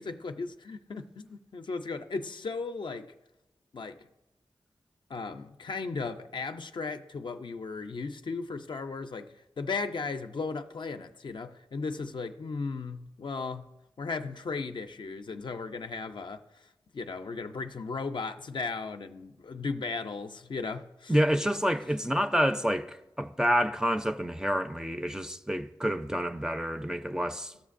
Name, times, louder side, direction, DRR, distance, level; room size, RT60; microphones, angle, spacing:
voice 1, 0.0-3.1 3.7-4.0 5.1-13.7 14.0-16.4 16.9-21.1, left 4 dB, 65° left, 0.4 m, -36 dB
voice 2, 21.1-27.5, equal, 5° right, 0.4 m, -28 dB
14.0 x 6.3 x 2.5 m
cardioid pair, 45°, 9 cm